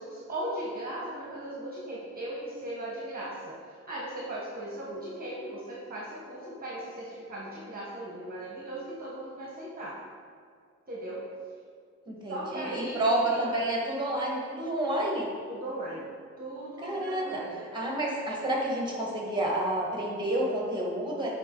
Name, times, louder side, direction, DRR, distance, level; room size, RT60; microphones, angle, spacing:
voice 1, 0.0-3.6 3.9-10.0 10.9-11.2 12.3-13.4 15.5-16.1 16.4-17.7, right 1 dB, 30° right, -6 dB, 1.1 m, -38 dB
voice 2, 12.1-15.3 16.8-21.3, right 1 dB, 15° right, -2 dB, 1.4 m, -29 dB
8.1 x 3.8 x 3.7 m, 2.1 s
wide cardioid pair, 115°, 30 cm